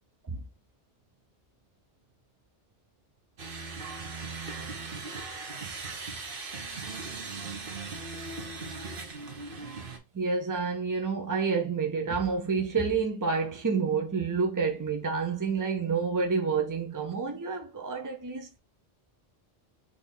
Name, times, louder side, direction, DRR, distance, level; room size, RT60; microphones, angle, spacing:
sound 1, 3.4-10.0, right 4 dB, 55° right, 1.0 m, -38 dB
voice 1, 10.1-18.6, right 5 dB, 30° right, 0.3 m, -29 dB
4.8 x 2.7 x 3.7 m
omnidirectional pair, 1.2 m